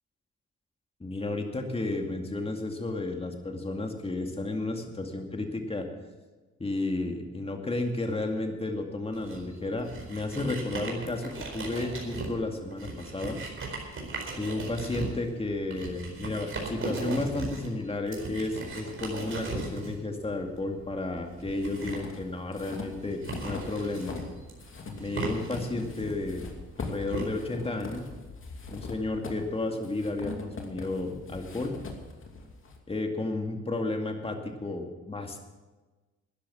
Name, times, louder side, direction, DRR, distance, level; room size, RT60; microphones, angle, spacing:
voice 1, 1.0-5.9 6.6-13.4 14.4-24.2 25.0-26.4 26.8-28.0 28.7-31.7 32.9-35.4, left 2 dB, 20° left, 3 dB, 2.3 m, -32 dB
sound 1, 9.1-27.2, right 3 dB, 45° right, 4.5 m, -38 dB
sound 2, 21.3-24.3 24.6-32.8, left 3 dB, 45° left, 2.7 m, -41 dB
13.0 x 10.0 x 7.3 m, 1.2 s
cardioid pair, 90°, 30 cm